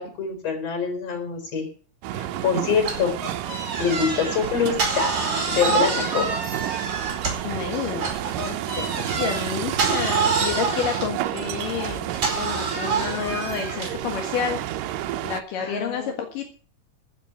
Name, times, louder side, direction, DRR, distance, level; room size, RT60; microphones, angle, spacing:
voice 1, 0.0-1.7 2.1-3.1 3.8-5.1 5.5-6.3 15.6-16.1, left 6 dB, 50° left, 6 dB, 5.2 m, -25 dB
sound 1, 2.0-15.4, right 12 dB, 90° right, 2.5 m, -31 dB
sound 2, 2.8-7.6 8.0-14.0, right 4 dB, 35° right, 5.3 m, -27 dB
voice 2, 5.7-6.0 7.4-12.1 12.3-14.6 15.2-16.4, left 7 dB, 85° left, 3 dB, 3.3 m, -30 dB
sound 3, 8.1-8.2 8.6-9.6 10.0-11.0 11.3-13.4, left 2 dB, 5° right, 1.7 m, -43 dB
14.5 x 8.2 x 8.0 m, 0.42 s
omnidirectional pair, 3.7 m